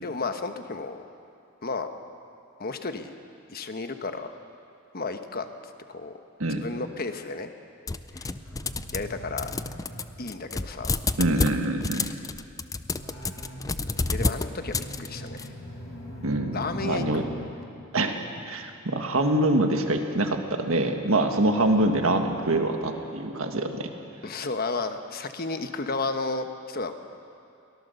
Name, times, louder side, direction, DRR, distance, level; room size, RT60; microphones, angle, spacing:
voice 1, 0.0-1.0 1.6-1.9 2.6-3.2 3.5-4.3 4.9-5.5 5.9-6.2 6.5-7.5 8.1-8.3 8.9-9.5 10.2-10.9 12.0-12.2 14.1-15.5 16.5-17.3 24.2-26.9, left 3 dB, 45° left, 7 dB, 1.1 m, -32 dB
sound 1, 7.9-9.1 9.4-15.5, left 3 dB, 15° left, 0.4 m, -30 dB
sound 2, 8.1-11.2 12.9-18.6 21.6-24.0, equal, 75° left, 5.8 m, -42 dB
voice 2, 11.2-12.1 16.2-17.2 17.9-18.1 18.5-23.9, right 1 dB, 75° right, 5 dB, 1.7 m, -25 dB
23.5 x 18.0 x 6.8 m, 2.5 s
head